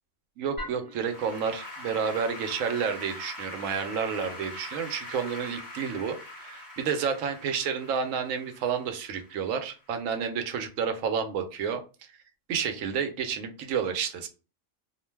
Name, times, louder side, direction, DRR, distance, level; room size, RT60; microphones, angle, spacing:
voice 1, 0.4-11.8 12.5-14.3, right 6 dB, 85° right, 7 dB, 1.0 m, -30 dB
Applause / Keyboard (musical), 0.6-9.9, left 1 dB, 15° left, 0.9 m, -42 dB
2.4 x 2.2 x 3.2 m, 0.32 s
omnidirectional pair, 1.3 m